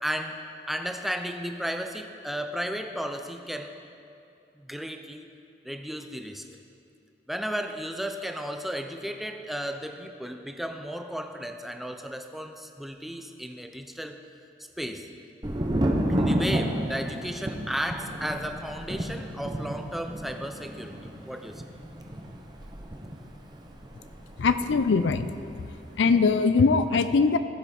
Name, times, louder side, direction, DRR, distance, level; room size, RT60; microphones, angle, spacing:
voice 1, 0.0-3.8 4.6-5.3 5.6-6.4 7.3-14.2 14.8-15.1 16.1-21.6, equal, ahead, 5 dB, 0.4 m, -34 dB
Thunder, 15.4-25.1 25.3-26.1, right 1 dB, 25° right, 0.7 m, -31 dB
voice 2, 24.4-25.3 26.0-27.4, left 4 dB, 80° left, 11 dB, 0.4 m, -21 dB
15.0 x 5.7 x 4.2 m, 2.7 s
head